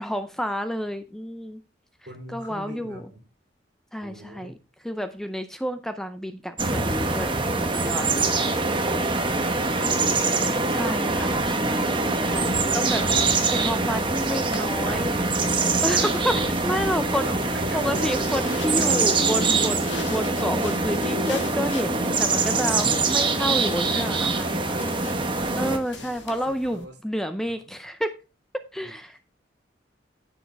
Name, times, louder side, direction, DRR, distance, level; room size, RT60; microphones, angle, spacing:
voice 1, 0.0-1.6 2.3-3.1 3.9-4.5 4.8-8.1 10.7-15.2 15.7-17.4 17.7-24.3 25.5-28.2 28.7-29.2, equal, ahead, 9 dB, 0.5 m, -30 dB
voice 2, 2.0-3.0 4.0-4.6 14.3-15.8 17.2-18.1 18.4-18.6 23.9-25.3 25.6-26.9 28.8-29.0, right 1 dB, 65° right, 4 dB, 2.8 m, -42 dB
sound 1, 6.6-25.8, right 3 dB, 25° right, 1.1 m, -24 dB
sound 2, 13.3-26.9, left 5 dB, 80° left, 1.5 m, -43 dB
10.0 x 7.2 x 3.4 m, 0.29 s
head